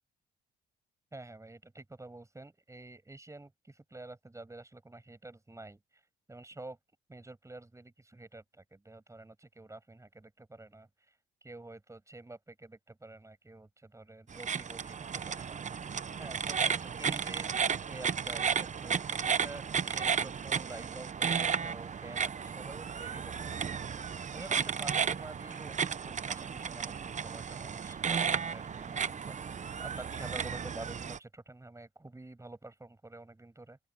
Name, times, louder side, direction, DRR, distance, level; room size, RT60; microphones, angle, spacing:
voice 1, 1.1-5.8 6.3-6.8 7.1-10.9 11.4-15.6 16.2-17.5 17.9-24.0 24.3-33.8, right 2 dB, 15° right, 6.3 m, -49 dB
sound 1, 14.3-31.2, right 6 dB, 35° right, 0.9 m, -34 dB
open air
cardioid pair, 90°, 20 cm